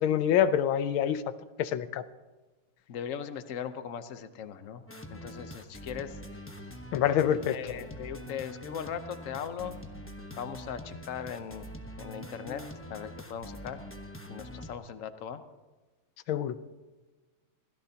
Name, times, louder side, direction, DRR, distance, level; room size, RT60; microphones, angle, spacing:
voice 1, 0.0-1.2 1.6-2.0 6.9-7.6 16.3-16.6, left 9 dB, 90° left, 13 dB, 1.6 m, -26 dB
voice 2, 2.9-4.8 5.1-6.4 7.5-9.8 10.3-13.8 14.3-15.4, left 8 dB, 55° left, 10 dB, 1.0 m, -39 dB
sound 1, 4.9-14.7, equal, 15° left, 0.4 m, -44 dB
26.5 x 17.0 x 2.9 m, 1.2 s
omnidirectional pair, 2.2 m